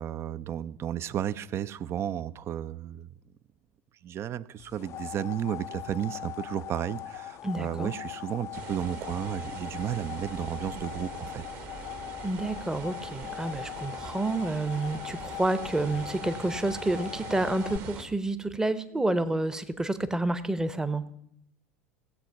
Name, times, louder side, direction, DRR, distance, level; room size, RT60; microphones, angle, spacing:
voice 1, 0.0-3.1 4.0-11.4, right 10 dB, 35° right, 17 dB, 0.5 m, -33 dB
sound 1, 4.6-17.8, left 13 dB, 40° left, 0.5 m, -41 dB
voice 2, 7.4-7.9 12.2-21.0, right 2 dB, 10° right, 13 dB, 0.8 m, -29 dB
sound 2, 8.5-18.0, right 6 dB, 50° right, 1.7 m, -43 dB
16.5 x 7.7 x 5.7 m, 0.75 s
figure-of-eight pair, 75°, 8 cm